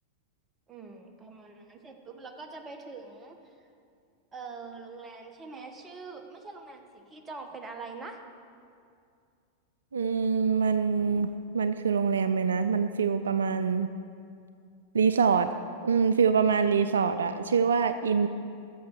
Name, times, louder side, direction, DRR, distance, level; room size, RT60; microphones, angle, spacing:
voice 1, 0.7-3.5 4.3-8.2, right 4 dB, 20° right, 4 dB, 1.4 m, -44 dB
voice 2, 9.9-11.3 11.5-13.9 14.9-15.5 15.8-18.3, right 6 dB, 80° right, 11 dB, 0.4 m, -25 dB
14.0 x 6.9 x 6.6 m, 2.4 s
figure-of-eight pair, 95°, 0 cm